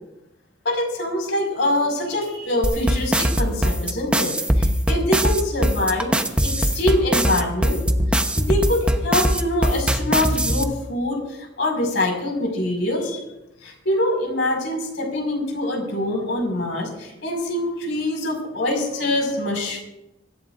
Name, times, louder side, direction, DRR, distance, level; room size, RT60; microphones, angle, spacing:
voice 1, 0.6-6.2 6.4-7.8 8.4-13.2 13.6-19.8, left 1 dB, 70° left, 2 dB, 5.6 m, -24 dB
sound 1, 2.6-10.6, equal, 5° right, 1.0 m, -20 dB
25.0 x 15.0 x 2.6 m, 0.92 s
head